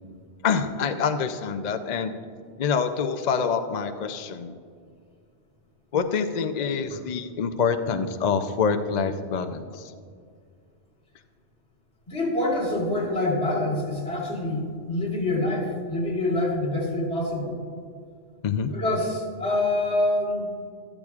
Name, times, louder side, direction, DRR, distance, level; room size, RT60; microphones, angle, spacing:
voice 1, 0.4-2.1 2.6-4.5 5.9-9.9 18.4-18.7, left 6 dB, 50° left, 7 dB, 0.5 m, -26 dB
voice 2, 12.1-17.6 18.7-20.5, left 1 dB, 70° left, -5 dB, 3.5 m, -26 dB
13.5 x 13.5 x 2.4 m, 2.2 s
omnidirectional pair, 1.2 m